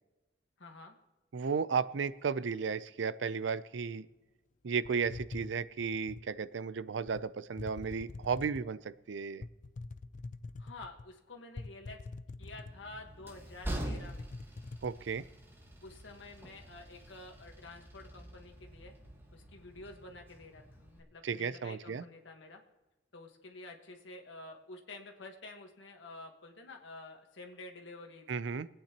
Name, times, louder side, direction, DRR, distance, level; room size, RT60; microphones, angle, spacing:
voice 1, 0.6-0.9 10.6-12.0 12.4-14.3 15.8-18.9 19.3-22.6 23.1-28.3, left 2 dB, 85° left, 2 dB, 1.4 m, -50 dB
voice 2, 1.3-4.1 4.6-9.5 14.8-15.2 21.2-22.0 28.3-28.7, right 5 dB, 75° right, 16 dB, 0.5 m, -34 dB
sound 1, 4.8-6.3 7.1-7.2 7.6-8.7 9.4-11.1 11.6-13.0 13.3-13.4 13.7-14.9, left 3 dB, 45° left, 0.4 m, -45 dB
Train, 12.4-21.0, right 1 dB, 10° right, 1.5 m, -45 dB
24.0 x 8.8 x 2.9 m, 1.1 s
head